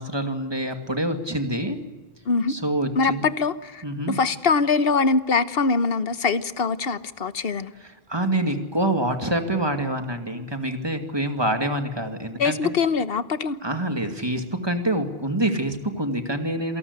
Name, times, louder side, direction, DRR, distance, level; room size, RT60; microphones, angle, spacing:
voice 1, 0.0-1.8 2.5-3.2 3.8-4.2 7.8-12.7 13.6-16.8, right 1 dB, 25° right, 6 dB, 2.4 m, -26 dB
voice 2, 2.9-7.7 12.4-13.6, left 4 dB, 70° left, 13 dB, 1.3 m, -23 dB
28.0 x 18.0 x 8.2 m, 1.3 s
omnidirectional pair, 1.0 m